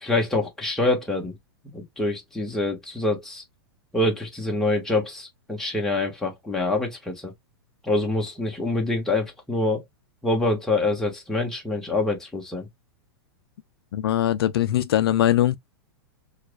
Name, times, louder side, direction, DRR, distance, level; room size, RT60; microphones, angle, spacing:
voice 1, 0.0-1.3 1.7-3.4 3.9-7.3 7.8-9.8 10.2-12.7, left 2 dB, 5° left, 1.3 m, -25 dB
voice 2, 13.9-15.6, left 12 dB, 75° left, 0.5 m, -21 dB
4.5 x 2.4 x 2.3 m
hypercardioid pair, 135°, 13 cm